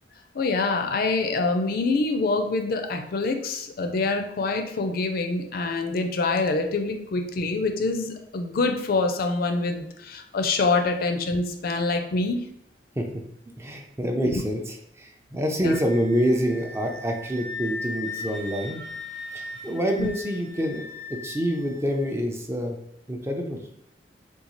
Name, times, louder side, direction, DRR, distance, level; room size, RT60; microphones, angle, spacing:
voice 1, 0.3-12.4 14.2-14.4 15.6-15.8 20.0-20.1, left 3 dB, 55° left, 5 dB, 0.4 m, -25 dB
voice 2, 13.6-18.8 19.3-20.9 21.2-22.8 23.1-23.6, equal, 15° right, 3 dB, 0.4 m, -26 dB
Wind instrument woodwind instrument, 15.6-22.0, left 3 dB, 90° right, 1.4 m, -38 dB
3.8 x 2.3 x 3.0 m, 0.76 s
head